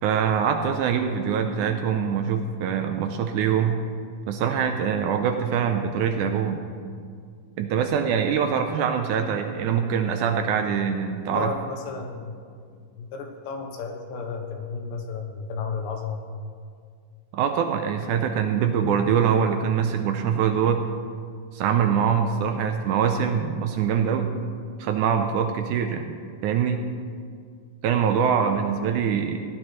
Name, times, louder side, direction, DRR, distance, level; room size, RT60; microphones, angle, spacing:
voice 1, 0.0-3.8 4.3-6.6 7.6-11.5 17.3-20.8 21.5-24.3 24.8-26.1 26.4-26.8 27.8-29.4, right 7 dB, 80° right, 6 dB, 1.9 m, -24 dB
voice 2, 11.3-12.3 12.7-16.3, left 5 dB, 80° left, 4 dB, 2.7 m, -33 dB
16.5 x 10.5 x 3.1 m, 2.1 s
omnidirectional pair, 3.9 m